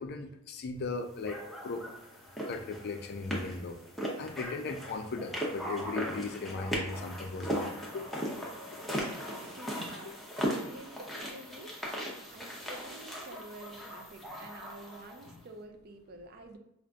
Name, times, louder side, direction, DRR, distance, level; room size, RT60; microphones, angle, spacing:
voice 1, 0.0-1.9 2.5-3.8 4.2-8.1 8.4-8.8, left 3 dB, 50° left, 6 dB, 0.4 m, -38 dB
sound 1, 1.2-15.3, equal, ahead, 0.6 m, -38 dB
voice 2, 9.5-16.6, right 2 dB, 45° right, 5 dB, 0.4 m, -49 dB
5.0 x 2.4 x 2.3 m, 0.82 s
head